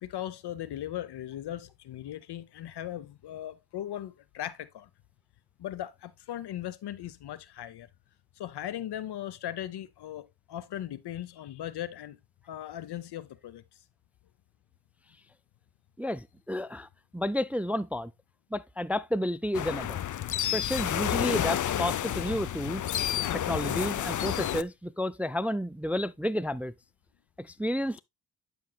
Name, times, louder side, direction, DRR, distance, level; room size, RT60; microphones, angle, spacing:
voice 1, 0.0-4.9 5.6-7.9 8.4-12.2 12.5-13.6, left 12 dB, 80° left, 0.8 m, -38 dB
voice 2, 16.0-18.1 18.5-20.0 20.5-22.8 23.3-26.7 27.4-28.0, left 1 dB, 5° right, 0.3 m, -31 dB
sound 1, 19.5-24.6, left 11 dB, 50° left, 0.5 m, -30 dB
11.0 x 5.4 x 2.2 m
cardioid pair, 65°, 39 cm